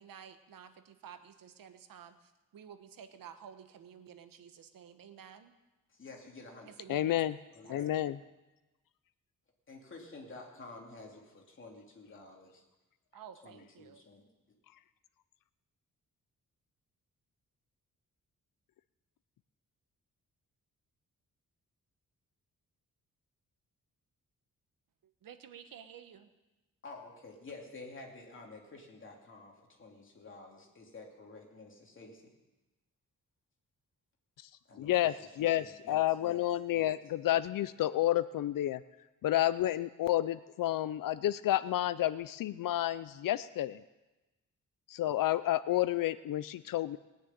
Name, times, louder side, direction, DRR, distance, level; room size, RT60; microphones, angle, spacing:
voice 1, 0.0-5.5 6.6-7.2 7.6-7.8 13.1-14.0 25.2-26.3, right 8 dB, 85° right, 9 dB, 1.2 m, -52 dB
voice 2, 5.9-7.0 7.5-8.0 9.7-12.6 13.4-14.3 26.8-32.2 34.7-34.9 35.4-36.4 36.7-36.9, left 3 dB, 35° left, 0 dB, 2.9 m, -50 dB
voice 3, 6.9-7.4 7.7-8.2 34.4-34.5 34.8-38.8 39.2-43.8 44.9-47.0, left 13 dB, 80° left, 15 dB, 0.5 m, -30 dB
20.0 x 6.7 x 9.2 m, 1.1 s
wide cardioid pair, 150°, 33 cm